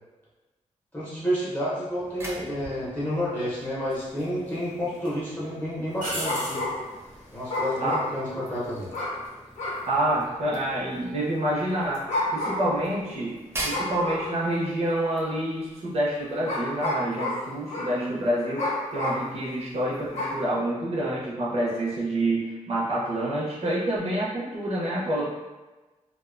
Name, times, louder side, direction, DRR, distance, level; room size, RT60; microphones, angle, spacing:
voice 1, 0.9-6.6 7.3-8.9, equal, 15° left, -9 dB, 0.7 m, -30 dB
sound 1, 1.8-14.8, right 1 dB, 20° right, 0.4 m, -43 dB
sound 2, 2.6-2.8 3.9-4.5 4.9-5.1 6.0-6.7 9.8-10.2, right 1 dB, 80° right, 0.9 m, -34 dB
sound 3, 6.0-7.0 7.5-8.5 8.9-9.3 9.6-9.9 10.5-10.6 11.9-12.8 13.7-14.4 15.2-15.3 16.4-18.0 18.6-19.3 20.1-20.4, left 1 dB, 60° left, 0.6 m, -30 dB
voice 2, 9.9-12.0 12.3-13.4 13.6-25.2, right 1 dB, 50° right, -6 dB, 0.7 m, -27 dB
2.4 x 2.2 x 2.4 m, 1.2 s
wide cardioid pair, 180°, 13 cm